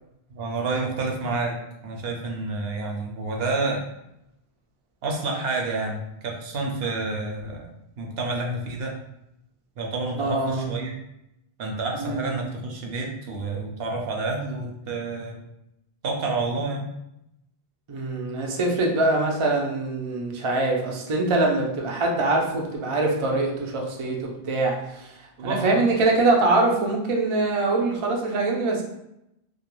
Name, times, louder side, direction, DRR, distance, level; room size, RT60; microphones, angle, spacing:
voice 1, 0.3-1.6 1.8-3.8 5.0-7.7 8.0-8.9 9.8-10.9 11.6-15.4 16.0-16.9 25.4-25.8, right 3 dB, 70° right, 0 dB, 0.8 m, -29 dB
voice 2, 10.2-10.7 12.0-12.4 17.9-25.1 25.4-28.8, right 2 dB, 55° right, 0 dB, 0.3 m, -23 dB
2.3 x 2.2 x 2.9 m, 0.83 s
omnidirectional pair, 1.1 m